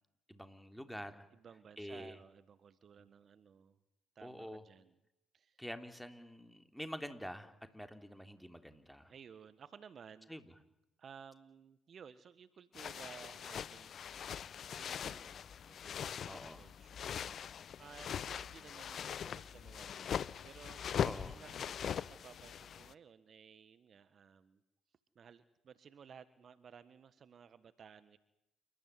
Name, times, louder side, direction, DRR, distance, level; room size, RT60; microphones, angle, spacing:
voice 1, 0.3-1.3 1.8-2.2 3.0-3.1 4.2-4.6 5.6-9.1 10.3-10.5 16.3-16.7 21.0-21.4, equal, ahead, 8 dB, 3.4 m, -47 dB
voice 2, 1.3-3.8 4.1-4.9 5.3-5.6 9.1-10.3 11.0-13.9 14.8-16.2 16.6-17.1 17.8-20.8 21.3-24.6 25.1-28.2, right 7 dB, 50° right, 14 dB, 1.5 m, -57 dB
sound 1, 12.7-22.9, left 8 dB, 55° left, 0.9 m, -41 dB
28.5 x 14.0 x 9.7 m, 0.84 s
hypercardioid pair, 55°, 0 cm